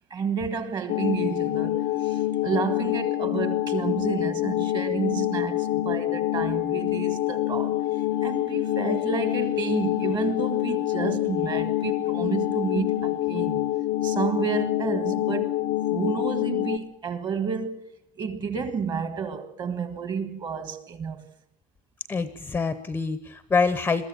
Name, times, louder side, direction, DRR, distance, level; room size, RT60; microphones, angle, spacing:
voice 1, 0.1-13.7 14.0-15.6 15.9-17.9 18.2-21.3, right 6 dB, 30° right, 1.6 m, -30 dB
sound 1, 0.9-16.8, left 14 dB, 55° left, 0.8 m, -26 dB
voice 2, 22.1-24.1, left 4 dB, 10° left, 0.8 m, -26 dB
22.0 x 14.0 x 8.6 m
cardioid pair, 180°, 15 cm